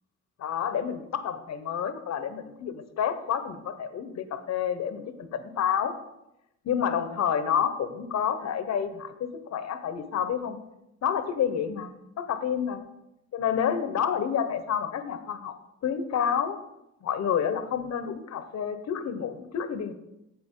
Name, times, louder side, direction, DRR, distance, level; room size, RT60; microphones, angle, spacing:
voice 1, 0.4-5.9 6.6-10.6 11.0-11.9 12.2-12.8 13.3-15.5 15.8-16.6 17.0-19.9, left 8 dB, 60° left, 10 dB, 1.0 m, -29 dB
9.8 x 7.7 x 3.8 m, 0.87 s
cardioid pair, 90°, 30 cm